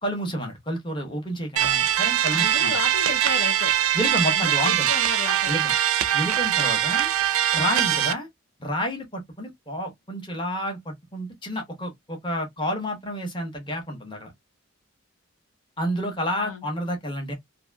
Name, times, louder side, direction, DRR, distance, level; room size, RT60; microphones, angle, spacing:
voice 1, 0.0-2.8 3.9-4.9 5.5-5.7 6.1-7.1 7.5-8.3 8.6-14.3 15.8-17.3, equal, 25° left, 1.0 m, -30 dB
sound 1, 1.6-8.1, right 11 dB, 85° right, 0.4 m, -22 dB
voice 2, 2.3-3.7 4.3-5.6 16.4-16.6, left 4 dB, 80° left, 0.7 m, -33 dB
2.7 x 2.5 x 2.2 m
head